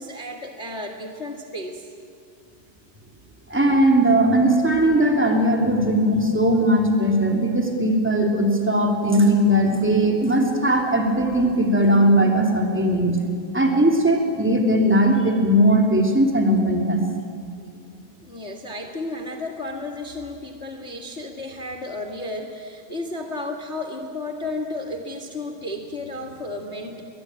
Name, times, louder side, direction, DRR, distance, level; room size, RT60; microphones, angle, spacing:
voice 1, 0.0-1.9 17.5-17.6 18.2-27.0, left 2 dB, 45° left, 5 dB, 0.8 m, -33 dB
voice 2, 3.5-13.2 13.5-17.0, right 1 dB, 5° right, 2 dB, 2.0 m, -19 dB
21.5 x 21.5 x 9.0 m, 2.3 s
omnidirectional pair, 4.1 m